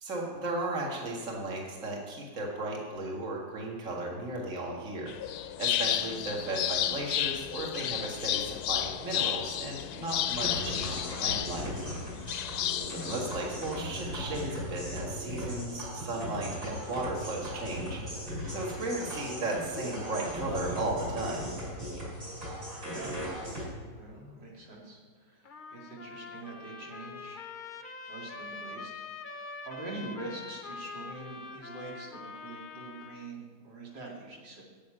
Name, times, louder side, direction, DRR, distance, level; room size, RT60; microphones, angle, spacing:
voice 1, 0.0-5.1 5.6-11.7 13.0-18.0 18.5-21.4, right 2 dB, 45° right, -2 dB, 2.3 m, -35 dB
sound 1, 5.1-14.0, left 11 dB, 70° left, 0.9 m, -32 dB
sound 2, 10.4-23.6, equal, 70° right, 5.5 m, -38 dB
voice 2, 22.8-23.3 23.9-27.4 28.1-28.9 29.3-34.6, right 2 dB, 85° right, -3 dB, 3.1 m, -44 dB
Trumpet, 25.4-33.3, left 4 dB, 50° left, 0.6 m, -44 dB
9.8 x 8.0 x 8.9 m, 1.5 s
omnidirectional pair, 1.9 m